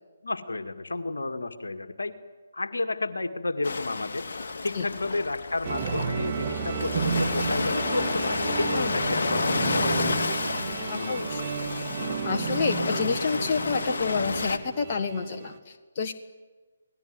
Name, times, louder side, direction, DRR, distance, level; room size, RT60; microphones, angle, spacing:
voice 1, 0.2-2.2 2.5-4.3 4.6-11.3, left 2 dB, 70° left, 8 dB, 2.0 m, -31 dB
Ocean, 3.6-14.6, left 4 dB, 55° left, 2.0 m, -31 dB
sound 1, 5.6-15.6, right 7 dB, 35° right, 1.9 m, -33 dB
voice 2, 10.9-11.4 12.2-16.1, left 5 dB, 35° left, 3 dB, 1.6 m, -29 dB
28.0 x 19.5 x 9.6 m, 1.4 s
figure-of-eight pair, 145°, 0 cm